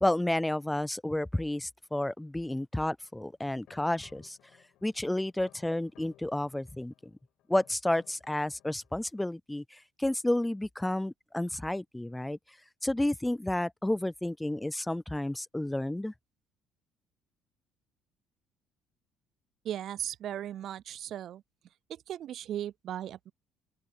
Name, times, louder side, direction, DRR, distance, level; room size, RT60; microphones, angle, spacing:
voice 1, 0.0-4.4 4.8-6.9 7.5-12.4 12.8-16.1, left 1 dB, 5° left, 0.4 m, -31 dB
sound 1, 3.2-9.1, left 14 dB, 75° left, 7.6 m, -62 dB
voice 2, 19.6-21.4 21.9-23.3, right 11 dB, 60° right, 0.3 m, -37 dB
open air
cardioid pair, 95°, 0 cm